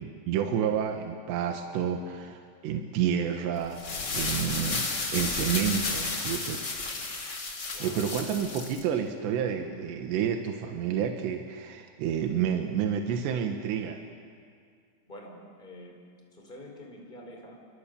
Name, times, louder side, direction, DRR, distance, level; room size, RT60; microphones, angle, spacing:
voice 1, 0.0-6.6 7.8-14.0, right 8 dB, 80° right, 4 dB, 3.5 m, -30 dB
sound 1, 3.6-8.8, left 3 dB, 30° left, 2.4 m, -32 dB
voice 2, 7.7-8.1 15.1-16.0 16.3-17.6, left 1 dB, 10° left, 1 dB, 4.1 m, -46 dB
29.0 x 24.5 x 6.8 m, 2.1 s
omnidirectional pair, 5.0 m